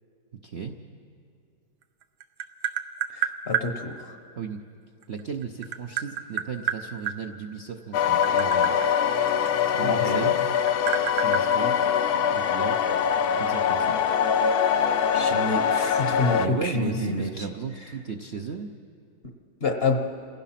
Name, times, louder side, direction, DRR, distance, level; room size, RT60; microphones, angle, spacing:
voice 1, 0.4-0.8 4.4-4.6 5.1-8.8 9.7-10.4 11.1-11.8 12.3-12.8 13.4-14.0 16.4-18.7, right 6 dB, 60° right, 4 dB, 0.6 m, -35 dB
Tap, 1.8-3.7 5.0-7.2 7.9-10.1 10.4-12.4, right 10 dB, 85° right, 1.6 m, -30 dB
voice 2, 3.1-3.9 9.8-10.3 15.1-17.5 19.6-20.0, left 3 dB, 40° left, 4 dB, 1.0 m, -27 dB
sound 1, 7.9-16.5, left 8 dB, 65° left, 1.1 m, -23 dB
28.5 x 16.0 x 5.9 m, 2.4 s
omnidirectional pair, 2.1 m